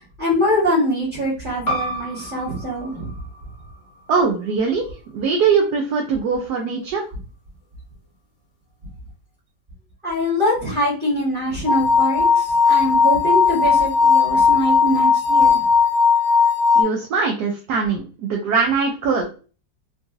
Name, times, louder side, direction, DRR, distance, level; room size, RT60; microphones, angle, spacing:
voice 1, 0.2-3.1 10.0-15.6, left 1 dB, 30° right, -5 dB, 1.4 m, -23 dB
sound 1, 1.7-6.8, right 1 dB, 50° left, 1.1 m, -34 dB
voice 2, 4.1-4.9 5.1-7.0 16.8-19.3, right 5 dB, 70° right, 1 dB, 1.1 m, -21 dB
sound 2, 11.7-16.8, left 5 dB, 75° left, 1.4 m, -16 dB
3.8 x 2.4 x 2.5 m, 0.36 s
omnidirectional pair, 1.9 m